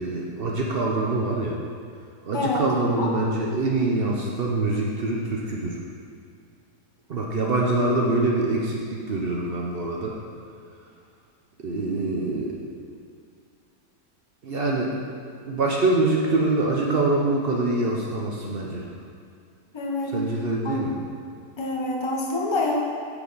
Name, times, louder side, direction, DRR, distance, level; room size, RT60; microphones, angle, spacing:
voice 1, 0.0-1.6 2.3-5.8 7.1-10.1 11.6-12.5 14.4-14.9 15.5-18.9 20.1-20.9, right 2 dB, 65° right, -2 dB, 0.5 m, -24 dB
voice 2, 2.3-2.7 2.9-3.1 7.7-7.8 19.7-20.1 20.6-20.8 21.6-22.8, left 2 dB, 30° left, -2 dB, 0.5 m, -27 dB
8.4 x 5.0 x 3.9 m, 2.3 s
omnidirectional pair, 1.8 m